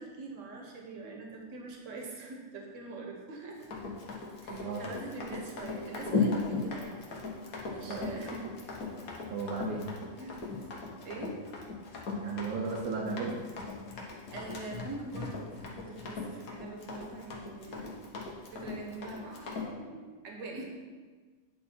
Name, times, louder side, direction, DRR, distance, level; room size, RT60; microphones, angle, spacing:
voice 1, 0.0-3.6 4.4-7.1 7.7-8.5 10.1-10.5 11.0-11.4 12.7-12.8 14.3-17.9 18.5-20.6, right 3 dB, 65° right, 0 dB, 1.4 m, -43 dB
Run, 3.6-19.7, left 4 dB, 85° left, 1.5 m, -37 dB
voice 2, 4.5-4.8 7.9-8.1 9.3-9.8 12.1-13.4, right 4 dB, 80° right, -3 dB, 1.3 m, -35 dB
9.4 x 3.8 x 4.4 m, 1.4 s
omnidirectional pair, 1.5 m